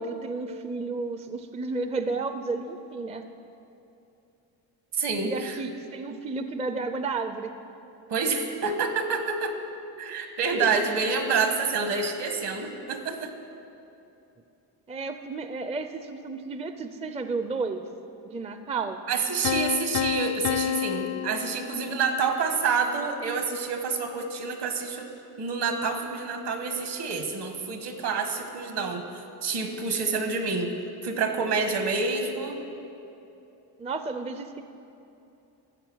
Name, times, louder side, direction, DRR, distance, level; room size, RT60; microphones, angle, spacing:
voice 1, 0.0-3.2 5.2-7.5 10.5-10.8 14.9-17.8 18.3-19.0 33.8-34.6, right 3 dB, 15° right, 9 dB, 0.4 m, -32 dB
voice 2, 4.9-5.6 8.1-9.6 10.0-13.3 19.1-25.1 25.4-30.7 31.0-32.6, right 4 dB, 60° right, 6 dB, 1.6 m, -28 dB
Piano, 19.4-22.3, left 11 dB, 75° left, 0.5 m, -29 dB
13.5 x 7.8 x 6.3 m, 2.9 s
cardioid pair, 100°, 44 cm